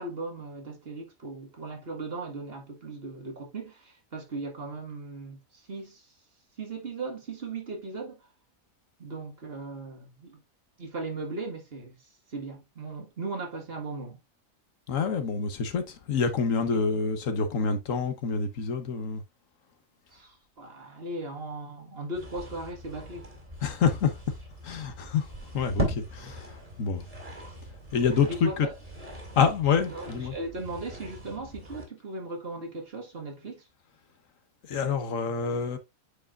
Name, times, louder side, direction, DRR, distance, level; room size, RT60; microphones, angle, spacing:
voice 1, 0.0-6.1 6.6-8.2 9.0-10.4 10.8-12.0 12.3-14.2 16.7-16.8 20.1-23.3 28.3-28.7 29.9-33.6, right 2 dB, 45° right, 1.9 m, -38 dB
voice 2, 14.9-19.2 23.6-24.1 24.6-25.3 25.5-27.1 27.9-28.7 29.4-30.3 34.7-35.8, left 6 dB, 70° left, 1.4 m, -27 dB
sound 1, 22.1-31.9, right 1 dB, 25° right, 2.5 m, -39 dB
9.0 x 4.8 x 2.4 m
omnidirectional pair, 1.4 m